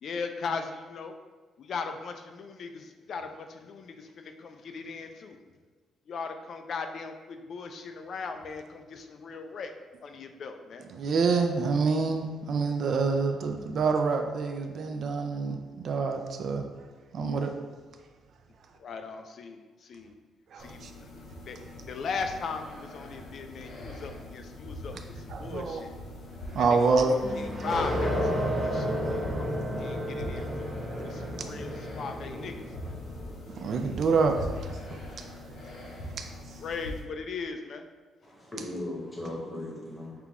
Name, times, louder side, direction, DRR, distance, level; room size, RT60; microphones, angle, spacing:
voice 1, 0.0-1.2 1.6-5.4 6.1-9.7 10.0-10.9 18.7-20.2 20.6-21.1 21.4-21.6 21.9-26.0 26.6-30.7 31.0-33.0 36.6-37.8, left 5 dB, 45° left, 6 dB, 0.3 m, -38 dB
voice 2, 10.9-16.6 17.1-17.5 20.5-20.9 25.3-25.8 26.5-27.2 31.0-31.4 33.5-35.5 36.2-36.6, right 4 dB, 45° right, 5 dB, 0.3 m, -27 dB
sound 1, 20.6-37.0, left 1 dB, 80° left, 1.2 m, -43 dB
sound 2, 27.2-33.6, equal, 15° right, 1.0 m, -32 dB
voice 3, 32.2-33.4 38.2-40.3, left 1 dB, 15° left, -3 dB, 0.9 m, -40 dB
5.6 x 2.4 x 3.4 m, 1.3 s
cardioid pair, 180°, 0 cm